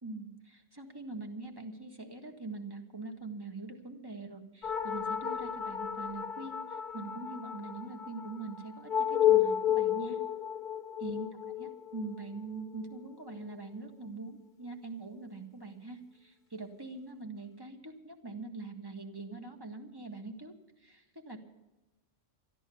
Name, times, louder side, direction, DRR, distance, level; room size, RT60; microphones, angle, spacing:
voice 1, 0.0-10.2 11.0-11.3 11.6-20.5 20.8-21.4, right 3 dB, 20° right, 4 dB, 1.6 m, -43 dB
sound 1, 4.6-13.5, left 10 dB, 45° left, 1.0 m, -32 dB
13.5 x 11.5 x 6.9 m, 1.1 s
omnidirectional pair, 1.3 m